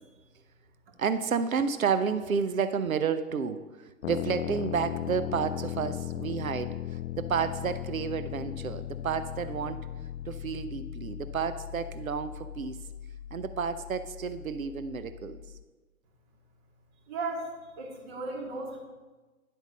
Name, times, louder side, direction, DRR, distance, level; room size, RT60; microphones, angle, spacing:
voice 1, 1.0-9.9 10.2-12.8 13.3-15.4, right 6 dB, 80° right, 12 dB, 0.8 m, -31 dB
sound 1, 4.0-15.6, left 11 dB, 65° left, 0.6 m, -38 dB
voice 2, 17.1-17.5 17.8-18.8, right 3 dB, 45° right, 1 dB, 2.7 m, -35 dB
11.0 x 8.0 x 5.2 m, 1.3 s
figure-of-eight pair, 105°, 41 cm